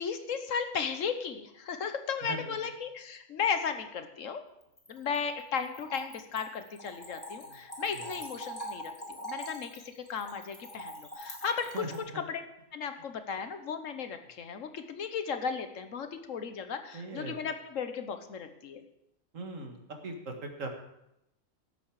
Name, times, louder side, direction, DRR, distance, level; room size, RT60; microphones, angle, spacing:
voice 1, 0.0-4.4 4.9-12.4 12.7-18.8, left 6 dB, 85° left, 8 dB, 1.4 m, -35 dB
Splash splatter / Trickle dribble, 4.6-12.0, equal, 30° left, 4.2 m, -43 dB
voice 2, 16.9-17.3 19.3-19.8 20.0-20.7, right 2 dB, 85° right, 3 dB, 2.1 m, -39 dB
17.5 x 7.8 x 4.8 m, 0.83 s
omnidirectional pair, 1.3 m